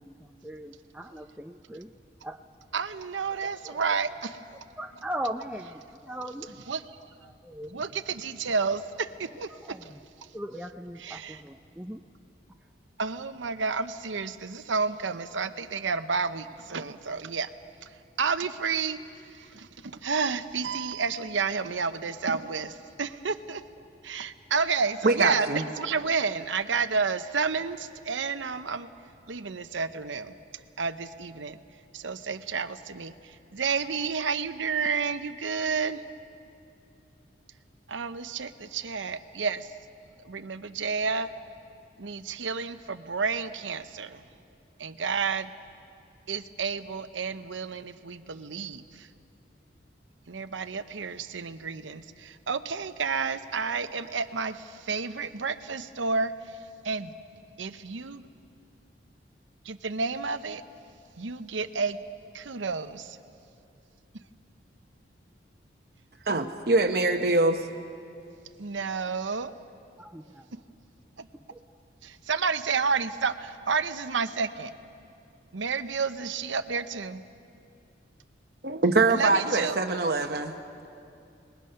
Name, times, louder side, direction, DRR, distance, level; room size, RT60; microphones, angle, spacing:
voice 1, 0.0-1.9 2.2-2.4 3.6-3.8 4.8-6.5 7.2-7.8 9.5-10.0 10.3-12.0 70.0-70.5 71.5-71.6, right 1 dB, 5° right, 4 dB, 0.5 m, -39 dB
voice 2, 2.7-4.4 6.7-6.8 7.7-9.5 9.8-9.9 11.0-11.4 13.0-17.5 18.2-19.0 19.5-23.6 24.0-25.5 25.8-28.9 29.3-30.3 30.8-31.6 31.9-36.0 37.9-39.7 40.2-41.3 42.0-44.2 44.8-45.5 46.3-49.1 50.3-56.3 56.8-57.1 57.6-58.3 59.7-60.6 61.2-62.0 62.3-63.2 66.3-66.4 68.6-69.5 71.2-71.3 72.0-74.7 75.5-77.2 79.1-79.8, right 5 dB, 85° right, 11 dB, 0.8 m, -30 dB
voice 3, 25.0-25.6 66.3-67.7 78.6-80.5, right 3 dB, 55° right, 4 dB, 0.9 m, -23 dB
29.5 x 21.0 x 5.7 m, 2.6 s
head